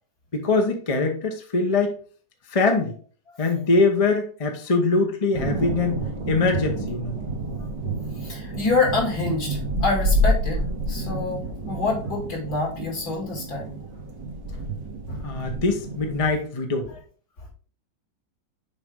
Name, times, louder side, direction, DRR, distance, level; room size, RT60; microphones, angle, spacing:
voice 1, 0.3-1.9 2.5-2.9 3.4-6.0 6.3-7.2 15.2-16.9, left 3 dB, 25° left, 3 dB, 0.8 m, -23 dB
voice 2, 3.3-3.6 7.2-7.3 8.2-13.8 14.5-14.6 15.1-15.2 16.9-17.0, left 3 dB, 60° left, -2 dB, 3.0 m, -27 dB
sound 1, 5.3-16.3, right 1 dB, 90° right, 2.1 m, -29 dB
7.0 x 4.9 x 3.6 m, 0.42 s
omnidirectional pair, 1.9 m